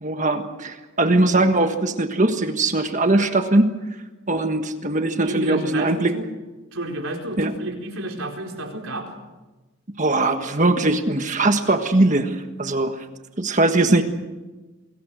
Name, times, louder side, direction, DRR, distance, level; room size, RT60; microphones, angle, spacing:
voice 1, 0.0-3.7 4.3-6.1 7.4-7.5 10.0-13.0 13.4-14.0, right 2 dB, 35° right, 6 dB, 1.5 m, -20 dB
voice 2, 5.2-6.2 6.7-9.1, right 1 dB, 70° right, 2 dB, 4.4 m, -31 dB
28.5 x 22.0 x 6.4 m, 1.2 s
head